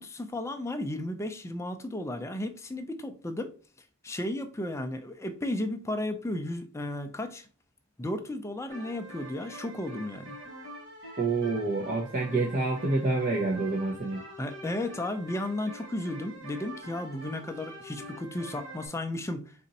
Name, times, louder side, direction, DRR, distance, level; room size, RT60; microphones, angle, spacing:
voice 1, 0.0-3.5 4.0-7.5 8.0-10.4 14.4-19.7, left 1 dB, 15° left, 0.4 m, -34 dB
sound 1, 8.7-18.9, equal, 55° right, 1.2 m, -45 dB
voice 2, 11.2-14.2, right 3 dB, 35° right, 0.7 m, -28 dB
4.1 x 2.6 x 3.9 m
head